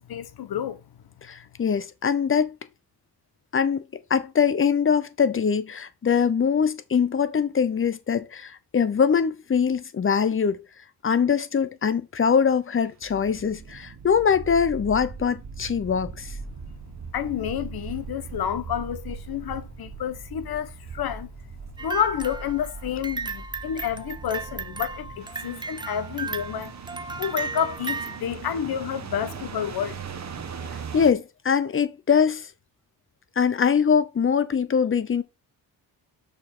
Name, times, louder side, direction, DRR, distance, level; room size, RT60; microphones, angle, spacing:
voice 1, 0.1-0.8 17.1-21.3 21.8-26.7 27.2-30.0, left 9 dB, 60° left, 1.1 m, -29 dB
voice 2, 1.2-2.6 3.5-3.8 4.1-10.6 11.0-16.3 30.9-32.5 33.4-35.2, left 6 dB, 30° left, 0.9 m, -23 dB
sound 1, 12.9-31.1, right 5 dB, 40° right, 1.2 m, -39 dB
sound 2, 21.8-28.2, right 4 dB, 10° right, 0.5 m, -35 dB
6.3 x 5.3 x 3.7 m
cardioid pair, 105°, 41 cm